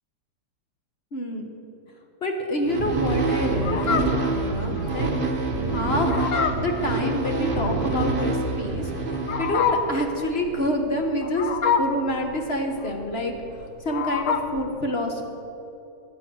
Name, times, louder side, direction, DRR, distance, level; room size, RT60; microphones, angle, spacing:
voice 1, 1.1-1.5 2.2-5.3 5.7-6.1 6.6-8.9 9.4-11.5 11.8-13.3 13.8-15.3, left 1 dB, 35° left, 3 dB, 1.4 m, -27 dB
sound 1, 2.6-10.1, right 3 dB, 35° right, 1.2 m, -26 dB
Fowl, 3.6-14.6, left 6 dB, 55° left, 1.0 m, -28 dB
15.0 x 9.6 x 6.3 m, 2.9 s
omnidirectional pair, 1.9 m